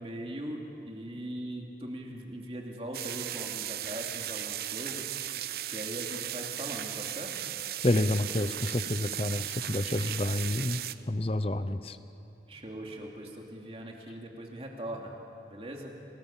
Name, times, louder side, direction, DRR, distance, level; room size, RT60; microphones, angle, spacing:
voice 1, 0.0-7.3 12.5-15.1 15.5-15.9, right 1 dB, 35° right, 0 dB, 2.8 m, -40 dB
sound 1, 2.9-10.9, right 12 dB, 55° right, 0.6 m, -36 dB
voice 2, 7.8-10.8 11.1-12.0, left 1 dB, 30° left, 12 dB, 0.8 m, -29 dB
29.5 x 19.0 x 7.3 m, 2.9 s
head